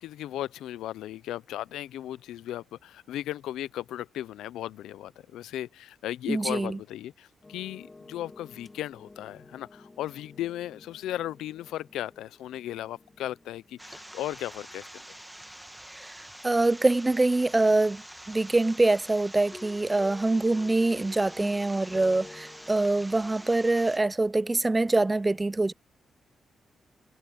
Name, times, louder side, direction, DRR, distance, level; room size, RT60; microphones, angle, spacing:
voice 1, 0.0-15.0, left 13 dB, 85° left, 0.6 m, -36 dB
voice 2, 6.3-6.8 15.9-16.2 16.4-18.0 18.3-25.7, right 2 dB, 25° right, 0.6 m, -24 dB
sound 1, 7.4-15.5 19.5-24.1, left 3 dB, 30° left, 3.2 m, -50 dB
sound 2, 13.8-24.0, right 1 dB, 5° right, 1.7 m, -46 dB
supercardioid pair, 55°, 0 cm